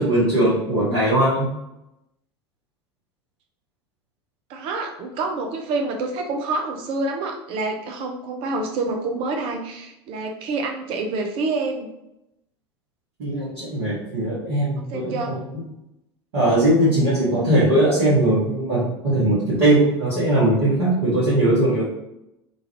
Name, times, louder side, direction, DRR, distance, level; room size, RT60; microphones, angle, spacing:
voice 1, 0.0-1.5 13.2-15.4 16.3-21.8, right 1 dB, 60° right, -11 dB, 1.3 m, -20 dB
voice 2, 4.5-11.9 14.8-15.4, right 3 dB, 45° right, 3 dB, 0.5 m, -27 dB
3.0 x 2.4 x 2.9 m, 0.87 s
figure-of-eight pair, 75°, 14 cm